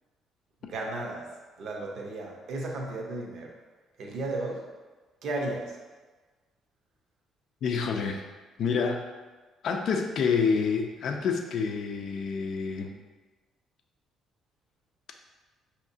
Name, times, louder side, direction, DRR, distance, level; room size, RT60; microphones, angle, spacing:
voice 1, 0.6-1.3 1.6-3.5 4.0-4.7 5.2-5.8, right 2 dB, 55° right, 0 dB, 0.8 m, -34 dB
voice 2, 7.6-8.2 8.6-9.0 9.6-12.9, left 5 dB, 55° left, 4 dB, 0.4 m, -28 dB
5.6 x 2.8 x 2.7 m, 1.3 s
cardioid pair, 150°, 0 cm